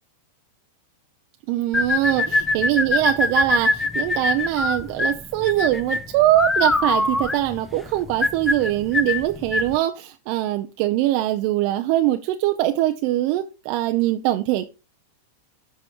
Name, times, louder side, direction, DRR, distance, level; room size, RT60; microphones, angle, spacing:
voice 1, 1.5-14.7, right 15 dB, 50° right, 6 dB, 0.6 m, -22 dB
sound 1, 1.7-9.8, left 2 dB, 10° left, 0.7 m, -23 dB
7.8 x 5.1 x 4.6 m, 0.30 s
hypercardioid pair, 130°, 0 cm